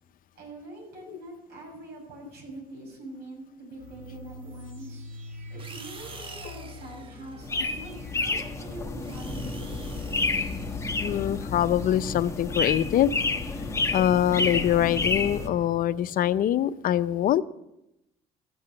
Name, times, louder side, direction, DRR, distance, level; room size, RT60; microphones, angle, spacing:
voice 1, 0.3-5.0 5.5-8.0 8.2-9.8, right 2 dB, 75° right, 0 dB, 6.7 m, -44 dB
sound 1, 3.8-15.7, left 2 dB, 50° right, 3.4 m, -43 dB
sound 2, 5.6-8.1 8.8-12.5, right 3 dB, 30° right, 1.2 m, -48 dB
sound 3, 7.4-15.5, left 3 dB, 15° left, 1.2 m, -30 dB
voice 2, 11.0-13.1 13.9-17.4, left 11 dB, 55° left, 14 dB, 0.6 m, -24 dB
14.0 x 8.1 x 7.7 m, 0.87 s
cardioid pair, 110°, 17 cm